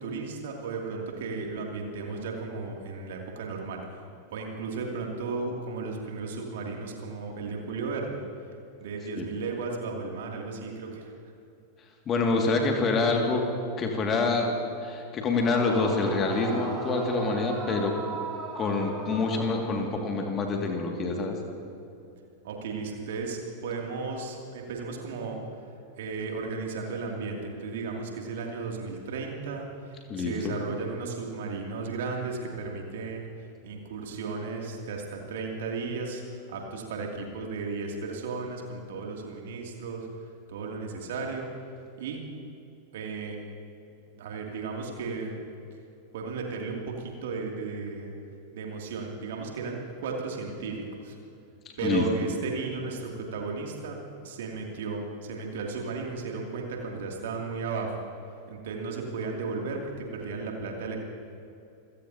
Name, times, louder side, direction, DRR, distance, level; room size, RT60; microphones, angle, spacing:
voice 1, 0.0-8.2 8.8-11.1 22.4-25.4 26.0-41.5 42.0-42.2 42.9-43.4 44.2-45.4 46.1-48.1 48.5-51.2 51.8-54.0 54.2-58.0 58.5-61.0, right 4 dB, 55° right, 0 dB, 2.7 m, -35 dB
voice 2, 12.1-13.5 13.8-14.5 14.8-17.9 18.5-21.4 30.1-30.5 51.8-52.0, left 3 dB, 25° left, 2 dB, 2.2 m, -26 dB
Yell / Screaming, 15.3-20.2, right 2 dB, 20° right, 3.4 m, -37 dB
27.5 x 17.0 x 2.9 m, 2.6 s
figure-of-eight pair, 90°, 0 cm